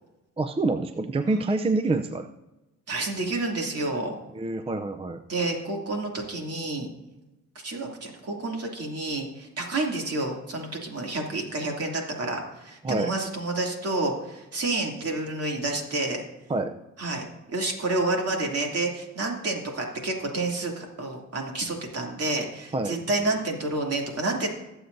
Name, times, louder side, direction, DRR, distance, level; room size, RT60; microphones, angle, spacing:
voice 1, 0.4-2.3 4.3-5.2 12.8-13.1 16.5-16.8 22.7-23.0, right 2 dB, 20° right, 8 dB, 0.5 m, -26 dB
voice 2, 2.9-4.1 5.3-6.9 7.5-16.2 17.0-24.5, right 2 dB, 55° right, 1 dB, 2.8 m, -29 dB
20.5 x 7.9 x 2.7 m, 1.0 s
cardioid pair, 90°, 30 cm